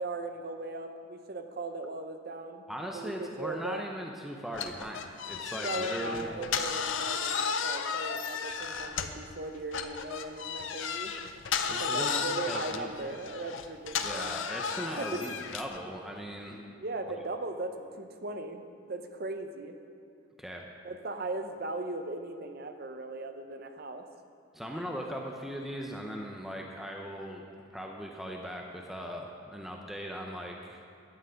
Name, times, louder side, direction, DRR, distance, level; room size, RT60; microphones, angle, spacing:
voice 1, 0.0-2.6 2.9-3.8 5.5-11.1 11.6-14.3 15.0-15.2 16.7-19.8 20.8-24.0, right 2 dB, 50° right, 6 dB, 0.7 m, -38 dB
voice 2, 2.7-6.5 11.7-12.9 14.0-16.6 20.4-20.7 24.5-27.5 27.7-30.8, equal, ahead, 0 dB, 0.6 m, -39 dB
sound 1, 4.5-9.3 9.7-15.8, left 6 dB, 75° left, 0.6 m, -34 dB
11.0 x 8.1 x 5.1 m, 2.6 s
head